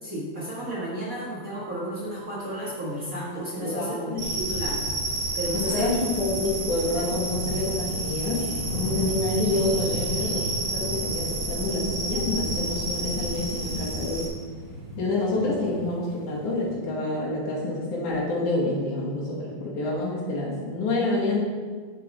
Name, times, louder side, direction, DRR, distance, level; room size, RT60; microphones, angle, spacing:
voice 1, 0.0-5.0 5.3-6.0, equal, 35° right, -7 dB, 1.7 m, -33 dB
sound 1, 2.4-16.7, right 1 dB, 85° right, 3.4 m, -38 dB
voice 2, 3.6-4.3 5.5-14.3 15.0-21.4, left 2 dB, 90° left, -5 dB, 3.4 m, -28 dB
sound 2, 4.2-14.3, right 2 dB, 60° right, 3.7 m, -30 dB
9.8 x 7.9 x 3.5 m, 1.6 s
omnidirectional pair, 3.4 m